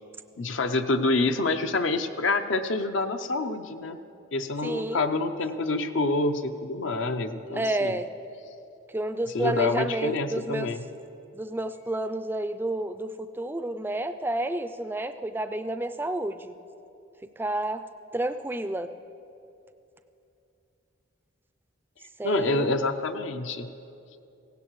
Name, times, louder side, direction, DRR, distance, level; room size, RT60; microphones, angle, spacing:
voice 1, 0.4-4.0 4.3-8.0 9.2-10.8 22.2-23.7, left 2 dB, 65° left, 8 dB, 0.6 m, -27 dB
voice 2, 4.6-5.0 7.5-8.1 8.9-10.7 11.3-16.5 17.4-17.8 18.1-18.9 22.2-22.7, right 1 dB, 10° right, 10 dB, 0.3 m, -30 dB
17.5 x 16.5 x 3.1 m, 2.7 s
head